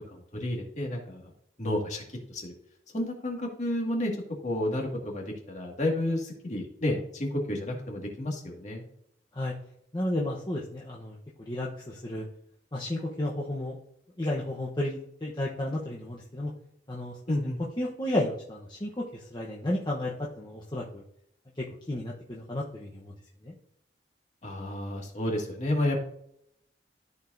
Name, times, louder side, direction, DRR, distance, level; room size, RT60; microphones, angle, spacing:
voice 1, 0.1-1.3 1.6-2.0 2.3-2.5 2.9-4.1 4.4-8.8 17.3-17.6 24.4-26.1, left 1 dB, 45° left, 0 dB, 2.0 m, -31 dB
voice 2, 9.9-12.2 12.7-13.8 14.2-16.5 16.9-17.2 17.8-21.0 21.6-23.1 23.4-23.5, left 1 dB, 25° left, -3 dB, 0.9 m, -32 dB
14.0 x 4.8 x 2.6 m, 0.73 s
head